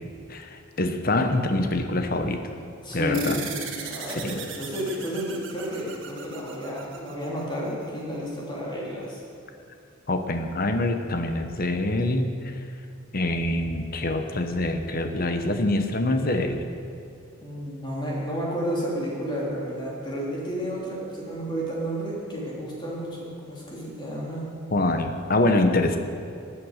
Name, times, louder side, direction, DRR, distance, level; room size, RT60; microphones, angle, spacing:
voice 1, 0.3-2.4 2.9-3.4 4.1-4.4 10.1-12.3 13.1-16.6 24.7-26.0, left 2 dB, 45° left, 6 dB, 1.1 m, -25 dB
voice 2, 2.8-3.4 3.8-9.2 17.4-24.5, equal, 20° left, -5 dB, 3.2 m, -31 dB
sound 1, 3.1-8.0, right 6 dB, 60° right, 1.7 m, -38 dB
15.5 x 9.3 x 6.6 m, 2.6 s
head